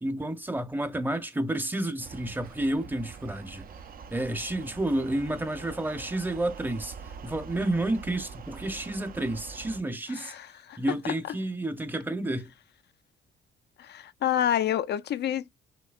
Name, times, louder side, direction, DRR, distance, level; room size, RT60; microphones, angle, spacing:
voice 1, 0.0-3.6 4.1-6.9 7.2-10.3 10.8-12.5, right 1 dB, 10° right, 0.8 m, -30 dB
sound 1, 2.0-9.8, right 6 dB, 45° right, 0.6 m, -44 dB
voice 2, 10.2-10.8 13.8-15.5, left 10 dB, 60° left, 0.5 m, -28 dB
5.9 x 2.9 x 2.4 m
cardioid pair, 90°, 20 cm